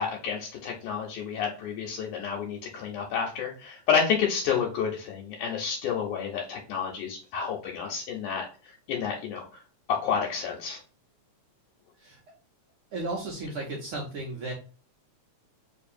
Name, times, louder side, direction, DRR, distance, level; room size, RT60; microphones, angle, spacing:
voice 1, 0.0-8.4 8.9-9.5 9.9-10.8, left 7 dB, 80° left, -1 dB, 2.2 m, -30 dB
voice 2, 12.9-14.5, right 2 dB, 80° right, -2 dB, 1.2 m, -34 dB
4.5 x 2.8 x 2.5 m, 0.38 s
omnidirectional pair, 3.5 m